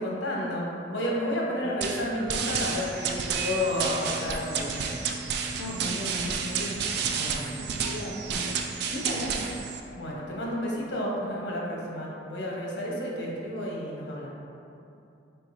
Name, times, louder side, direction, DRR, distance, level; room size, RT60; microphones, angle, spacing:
voice 1, 0.0-4.9 7.1-7.5 9.2-9.3 9.9-14.3, left 1 dB, 90° left, -3 dB, 0.8 m, -31 dB
sound 1, 1.8-9.8, right 6 dB, 60° right, 0.3 m, -31 dB
voice 2, 5.6-6.8 7.6-8.5 8.9-9.5, left 1 dB, 70° left, -5 dB, 0.5 m, -36 dB
4.6 x 3.6 x 2.6 m, 2.8 s
head